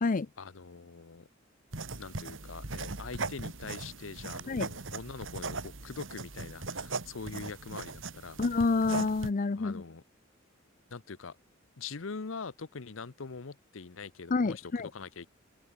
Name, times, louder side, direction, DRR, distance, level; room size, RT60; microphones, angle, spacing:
voice 1, 0.4-1.3 2.0-8.4 9.6-10.0 10.9-11.4 11.8-15.3, left 4 dB, 80° left, 0.9 m, -43 dB
sound 1, 1.7-9.3, right 3 dB, 75° right, 2.4 m, -39 dB
voice 2, 8.4-9.8 14.3-14.9, left 3 dB, 45° left, 0.5 m, -28 dB
open air
head